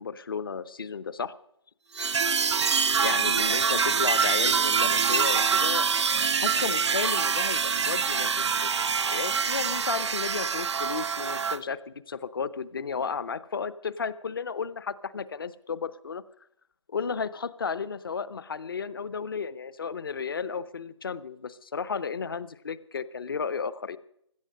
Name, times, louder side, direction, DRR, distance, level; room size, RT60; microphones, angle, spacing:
voice 1, 0.0-1.3 3.0-5.9 6.4-16.2 16.9-24.0, left 5 dB, 45° left, 17 dB, 0.8 m, -33 dB
sound 1, 2.0-11.6, right 6 dB, 65° right, 0.5 m, -25 dB
16.0 x 12.0 x 6.4 m, 0.73 s
figure-of-eight pair, 155°, 16 cm